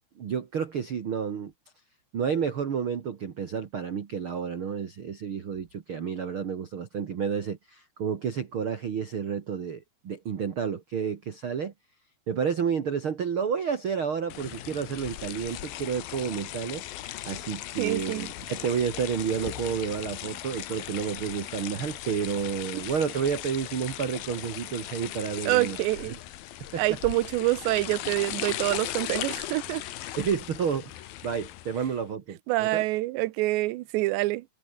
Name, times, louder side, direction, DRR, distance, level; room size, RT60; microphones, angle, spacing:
voice 1, 0.2-1.5 2.1-11.7 12.3-16.8 17.2-25.8 26.0-26.1 26.7-26.8 30.2-32.8, right 7 dB, 65° right, 1.3 m, -30 dB
sound 1, 14.3-32.0, left 14 dB, 70° left, 2.7 m, -38 dB
voice 2, 17.8-18.3 25.5-26.2 26.8-29.8 32.5-34.4, right 19 dB, 90° right, 3.1 m, -26 dB
omnidirectional pair, 4.9 m